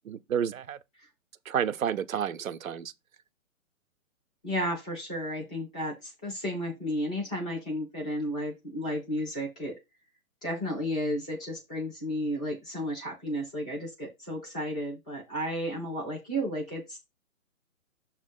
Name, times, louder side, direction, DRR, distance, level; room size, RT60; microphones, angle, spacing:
voice 1, 0.1-0.8 1.5-2.9, right 8 dB, 70° right, 0.8 m, -30 dB
voice 2, 4.4-9.8 10.4-17.0, equal, 5° left, 0.4 m, -33 dB
6.7 x 3.1 x 5.3 m
hypercardioid pair, 140°, 42 cm